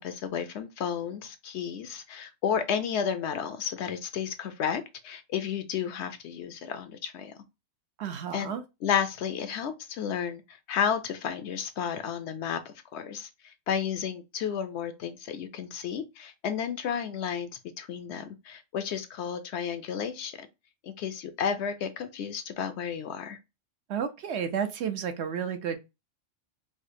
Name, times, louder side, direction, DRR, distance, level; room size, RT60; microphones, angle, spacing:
voice 1, 0.0-7.3 8.3-8.5 8.8-17.5 17.8-20.5 20.8-23.4, left 8 dB, 70° left, 0.8 m, -32 dB
voice 2, 8.0-8.6 23.9-25.8, right 7 dB, 65° right, 0.9 m, -31 dB
4.9 x 2.1 x 2.5 m
omnidirectional pair, 1.3 m